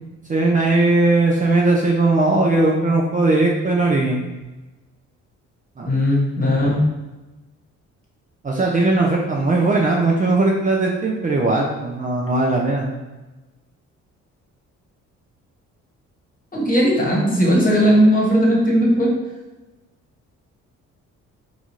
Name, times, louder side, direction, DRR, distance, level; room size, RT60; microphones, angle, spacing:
voice 1, 0.3-4.2 5.8-5.9 8.4-12.9, right 2 dB, 25° right, -2 dB, 0.5 m, -18 dB
voice 2, 5.8-6.8 16.5-19.1, equal, 30° left, -3 dB, 1.2 m, -17 dB
3.9 x 2.4 x 3.0 m, 1.1 s
cardioid pair, 90°, 30 cm